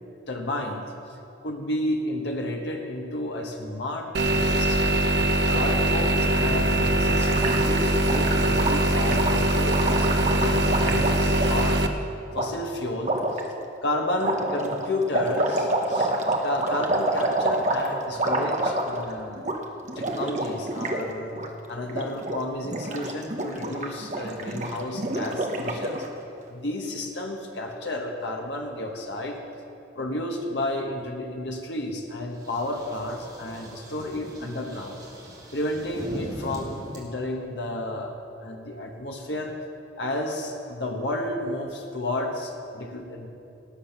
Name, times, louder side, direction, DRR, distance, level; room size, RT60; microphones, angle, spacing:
voice 1, 0.3-0.8 1.4-5.0 5.5-11.8 12.3-13.5 13.8-16.1 16.4-19.5 19.9-21.3 21.7-26.1 26.5-29.4 29.9-35.0 35.5-38.1 38.4-39.5 40.0-43.3, left 1 dB, 80° left, 2 dB, 1.2 m, -31 dB
sound 1, 4.1-11.9, right 1 dB, 75° right, 0.9 m, -22 dB
Gurgling, 7.1-11.7 12.3-12.5 13.0-13.4 14.2-19.1 19.4-19.6 19.8-21.0 21.3-21.5 21.8-22.4 22.6-26.1, right 2 dB, 40° right, 1.1 m, -28 dB
sound 2, 32.3-37.0, equal, 20° right, 2.6 m, -40 dB
18.5 x 7.5 x 5.9 m, 2.8 s
head